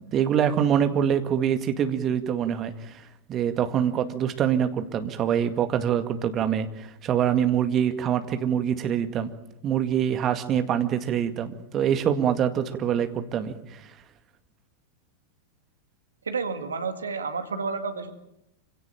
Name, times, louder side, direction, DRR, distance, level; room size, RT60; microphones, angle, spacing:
voice 1, 0.0-3.0 3.3-9.3 9.6-13.8, right 9 dB, 30° right, 8 dB, 2.0 m, -25 dB
voice 2, 16.3-18.1, right 4 dB, 70° right, 8 dB, 2.1 m, -30 dB
25.5 x 17.0 x 8.9 m, 0.84 s
figure-of-eight pair, 90°, 0 cm